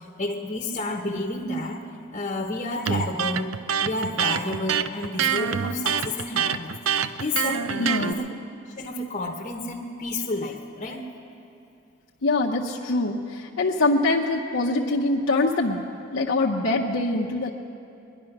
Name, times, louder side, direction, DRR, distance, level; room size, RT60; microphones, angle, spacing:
voice 1, 0.2-1.8 2.1-3.5 3.8-8.2 8.8-11.0, left 2 dB, 30° left, 0 dB, 0.9 m, -30 dB
Electric guitar, 2.9-8.1, right 8 dB, 80° right, 0.5 m, -25 dB
voice 2, 7.8-8.3 12.2-15.8 16.1-17.5, left 2 dB, 80° left, -3 dB, 0.8 m, -24 dB
21.0 x 11.0 x 5.9 m, 2.7 s
head